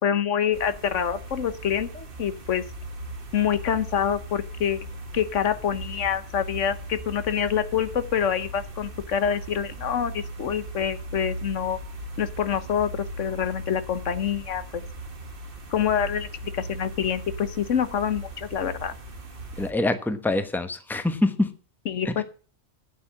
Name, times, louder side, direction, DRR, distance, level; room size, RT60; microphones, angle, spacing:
voice 1, 0.0-2.6 3.3-4.9 5.1-11.8 12.2-14.8 15.7-16.3 16.5-18.9 21.9-22.2, left 8 dB, 80° left, 12 dB, 1.3 m, -26 dB
sound 1, 0.5-19.7, right 1 dB, 50° right, 1.7 m, -38 dB
voice 2, 19.6-21.5 22.0-22.2, left 2 dB, ahead, 9 dB, 1.0 m, -25 dB
8.8 x 8.2 x 7.4 m, 0.40 s
omnidirectional pair, 1.3 m